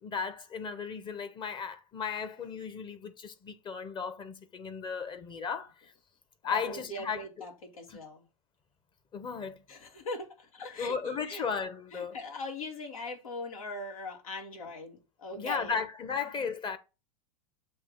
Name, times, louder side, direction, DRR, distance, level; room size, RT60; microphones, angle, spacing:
voice 1, 0.0-5.7 6.4-7.2 7.9-8.0 9.1-9.6 10.8-12.2 15.4-16.8, left 6 dB, 25° left, 1.1 m, -35 dB
voice 2, 6.4-8.3 9.7-11.4 11.9-15.8, left 2 dB, 80° left, 2.6 m, -41 dB
7.7 x 3.0 x 5.3 m
hypercardioid pair, 110°, 18 cm